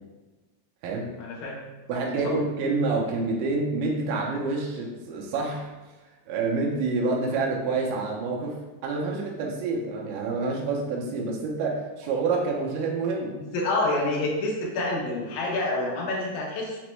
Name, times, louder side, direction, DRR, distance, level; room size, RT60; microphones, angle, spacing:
voice 1, 1.2-1.6 13.5-16.8, left 2 dB, 85° left, -2 dB, 2.5 m, -27 dB
voice 2, 1.9-5.7 6.3-13.4, right 3 dB, 80° right, -2 dB, 2.1 m, -27 dB
6.0 x 2.1 x 3.0 m, 1.1 s
omnidirectional pair, 4.0 m